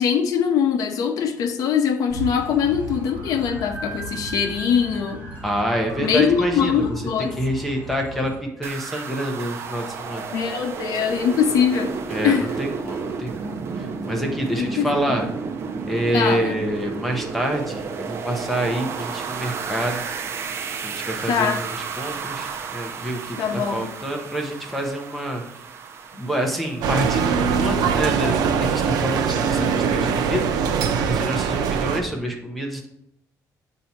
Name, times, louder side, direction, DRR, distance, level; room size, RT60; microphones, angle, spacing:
voice 1, 0.0-5.2 6.0-7.3 10.3-11.9 12.2-12.5 14.6-14.9 16.1-16.6 21.3-21.6 23.4-23.9, left 7 dB, 65° left, 6 dB, 0.7 m, -22 dB
sound 1, 2.1-8.3, right 1 dB, 25° right, 2.0 m, -36 dB
voice 2, 5.4-6.9 7.4-8.3 8.6-10.2 12.1-15.3 15.9-20.0 20.8-23.4 23.7-25.4 26.2-30.5 31.1-32.9, equal, ahead, 1 dB, 0.7 m, -27 dB
sound 2, 8.6-27.2, right 5 dB, 40° right, 0.5 m, -32 dB
sound 3, 26.8-32.0, right 6 dB, 80° right, 0.6 m, -22 dB
7.4 x 2.8 x 5.7 m, 0.78 s
cardioid pair, 170°, 7 cm